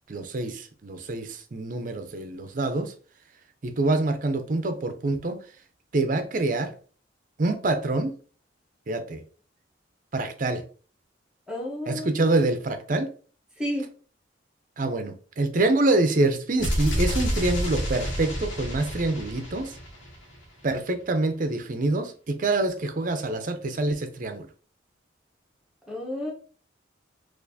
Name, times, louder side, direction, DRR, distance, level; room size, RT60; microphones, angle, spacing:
voice 1, 0.1-2.9 3.6-5.4 5.9-6.7 7.4-8.1 8.9-9.2 10.1-10.6 11.9-13.1 14.8-19.8 20.6-24.5, right 2 dB, 45° right, 0.5 m, -26 dB
voice 2, 11.5-12.2 13.6-13.9 25.9-26.3, equal, 5° right, 1.0 m, -31 dB
sound 1, 16.6-20.5, equal, 80° left, 1.2 m, -29 dB
4.3 x 2.5 x 2.7 m
head